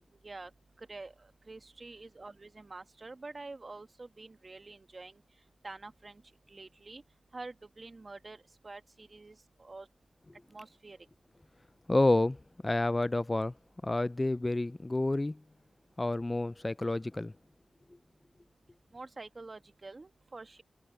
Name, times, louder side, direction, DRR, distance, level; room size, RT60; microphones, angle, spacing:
voice 1, 0.8-1.1 1.5-5.2 5.6-6.2 6.5-7.0 7.3-9.9 10.5-11.0 18.9-20.6, right 3 dB, 45° right, 1.4 m, -47 dB
voice 2, 11.9-13.5 13.8-15.4 16.0-17.3, left 2 dB, 25° left, 0.3 m, -29 dB
cardioid pair, 50°, 0 cm